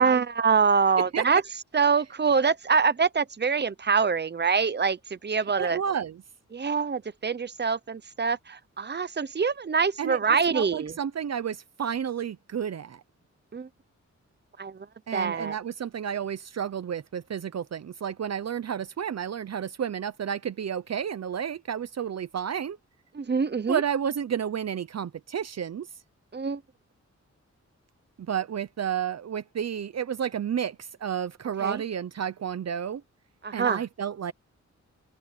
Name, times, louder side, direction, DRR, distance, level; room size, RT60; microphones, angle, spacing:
voice 1, 0.0-1.4 1.7-5.8 6.5-10.9 13.5-13.7 14.6-14.9 15.1-15.5 23.1-23.8 26.3-26.6 31.6-31.8 33.4-33.8, right 5 dB, 35° right, 0.9 m, -25 dB
voice 2, 5.6-6.2 10.0-10.2 10.5-13.0 15.1-22.8 23.7-25.9 28.3-33.0 33.5-34.3, right 8 dB, 60° right, 0.7 m, -31 dB
open air
wide cardioid pair, 115°, 29 cm